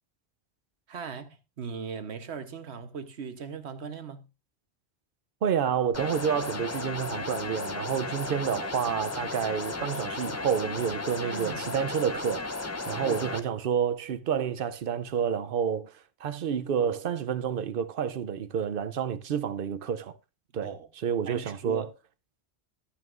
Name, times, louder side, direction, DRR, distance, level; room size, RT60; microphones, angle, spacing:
voice 1, 0.9-4.3 11.3-11.6 13.0-13.3 20.6-20.9 21.3-21.9, right 6 dB, 90° right, 1.3 m, -39 dB
voice 2, 5.4-20.2 20.5-20.7 21.0-21.9, right 8 dB, 60° right, 0.8 m, -29 dB
sound 1, 5.9-13.4, left 3 dB, 20° left, 0.5 m, -35 dB
13.0 x 9.3 x 2.5 m
omnidirectional pair, 1.1 m